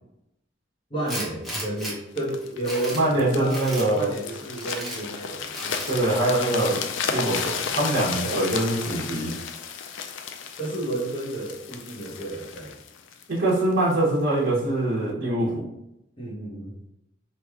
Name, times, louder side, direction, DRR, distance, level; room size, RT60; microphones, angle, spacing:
voice 1, 0.9-5.9 8.2-8.9 10.6-12.7 16.2-16.8, right 1 dB, 25° left, -5 dB, 0.9 m, -32 dB
Tools, 1.1-1.9 2.4-3.1 3.5-3.9 4.5-5.0 5.5-5.9, equal, ahead, 0.8 m, -34 dB
sound 1, 2.2-14.0 14.6-14.8, left 6 dB, 65° left, 0.3 m, -33 dB
voice 2, 2.9-4.1 5.9-9.3 13.3-15.6, right 1 dB, 55° right, -7 dB, 0.9 m, -23 dB
3.1 x 2.4 x 3.5 m, 0.84 s
head